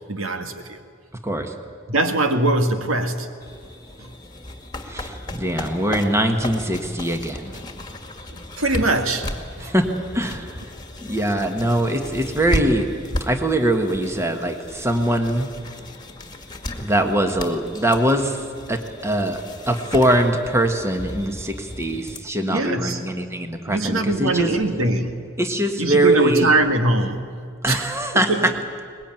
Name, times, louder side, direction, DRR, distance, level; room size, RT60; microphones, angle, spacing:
voice 1, 0.1-0.8 1.9-3.3 4.0-4.1 8.3-9.3 9.6-9.7 22.5-23.0 23.7-25.2 25.8-27.3 27.7-28.5, right 2 dB, 80° right, 6 dB, 1.9 m, -22 dB
sound 1, 3.4-22.2, left 1 dB, 20° left, 2.0 m, -34 dB
voice 2, 4.9-7.5 9.6-9.9 10.1-10.5 11.0-12.9 13.3-15.5 16.8-18.4 18.7-24.5 25.4-26.5 27.6-28.5, right 1 dB, 15° right, 5 dB, 1.6 m, -22 dB
23.5 x 21.0 x 9.1 m, 2.2 s
head